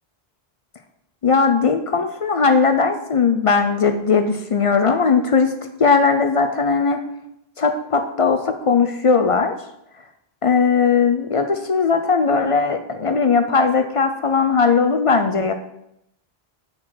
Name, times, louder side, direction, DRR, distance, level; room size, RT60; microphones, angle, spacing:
voice 1, 1.2-5.5 5.8-7.0 7.6-9.5 10.4-15.5, left 5 dB, 50° left, 6 dB, 0.4 m, -18 dB
4.7 x 4.5 x 5.8 m, 0.80 s
omnidirectional pair, 1.1 m